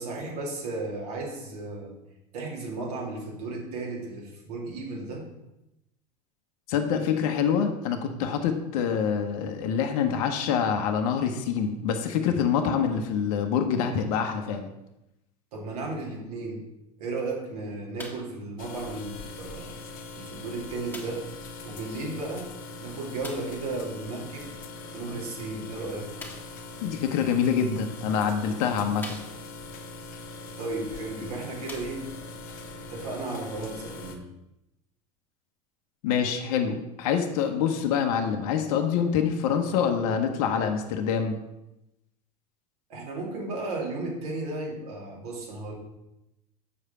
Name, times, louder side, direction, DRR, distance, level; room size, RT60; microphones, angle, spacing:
voice 1, 0.0-1.9 2.3-5.3 15.5-16.6 17.0-19.7 20.2-21.3 21.6-22.5 22.8-24.5 24.9-26.1 30.6-32.1 32.9-34.3 42.9-45.7, right 2 dB, 75° right, -1 dB, 2.7 m, -34 dB
voice 2, 6.7-14.7 26.8-29.2 36.0-41.4, left 7 dB, 65° left, 4 dB, 1.0 m, -26 dB
sound 1, 18.0-18.4 19.3-19.4 20.9-21.3 23.2-23.6 26.2-26.6 27.6-27.7 28.3-28.4 29.0-29.7 31.0-31.1 31.6-32.3 33.1-33.2, left 2 dB, 10° left, 1.8 m, -43 dB
sound 2, 18.6-34.2, left 3 dB, 45° left, 1.2 m, -42 dB
7.2 x 5.0 x 5.6 m, 0.91 s
hypercardioid pair, 90°, 20 cm